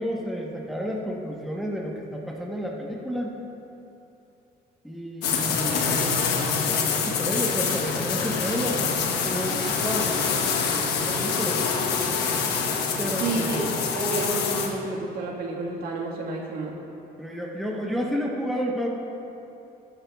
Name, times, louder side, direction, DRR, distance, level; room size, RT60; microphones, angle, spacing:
voice 1, 0.0-3.4 4.8-11.6 13.0-13.7 17.2-18.9, equal, ahead, -2 dB, 1.1 m, -31 dB
sound 1, 5.2-14.7, left 5 dB, 80° left, 1.1 m, -25 dB
voice 2, 13.2-16.8, right 3 dB, 70° right, -2 dB, 1.6 m, -30 dB
14.0 x 10.5 x 2.4 m, 2.8 s
cardioid pair, 110°, 17 cm